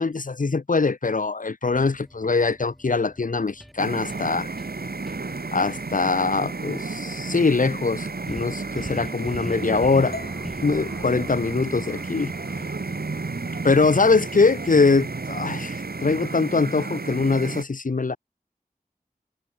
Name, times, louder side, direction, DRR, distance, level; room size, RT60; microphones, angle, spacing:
voice 1, 0.0-4.5 5.5-10.2 10.6-12.3 13.6-18.2, left 4 dB, 60° left, 0.8 m, -22 dB
sound 1, 1.7-16.2, equal, ahead, 0.9 m, -43 dB
sound 2, 3.8-17.6, right 3 dB, 75° right, 1.4 m, -32 dB
sound 3, 10.1-14.3, left 3 dB, 80° left, 4.4 m, -46 dB
wide cardioid pair, 45°, 16 cm